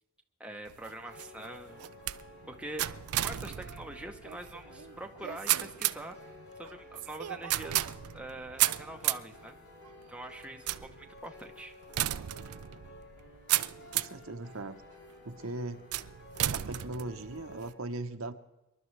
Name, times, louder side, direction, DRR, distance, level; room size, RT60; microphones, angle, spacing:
voice 1, 0.4-1.9 2.5-2.9 3.2-6.2 6.6-9.5 10.1-10.7 11.0-11.7, right 1 dB, 5° right, 3 dB, 0.8 m, -44 dB
sound 1, 0.7-14.3 14.8-15.3 15.9-17.7, right 14 dB, 90° right, 0.4 m, -34 dB
confused piano, 1.0-17.7, left 2 dB, 65° left, 5.8 m, -53 dB
voice 2, 13.9-14.8 15.2-15.8 16.5-18.3, right 2 dB, 65° right, 8 dB, 0.9 m, -39 dB
25.5 x 11.5 x 3.3 m, 1.0 s
head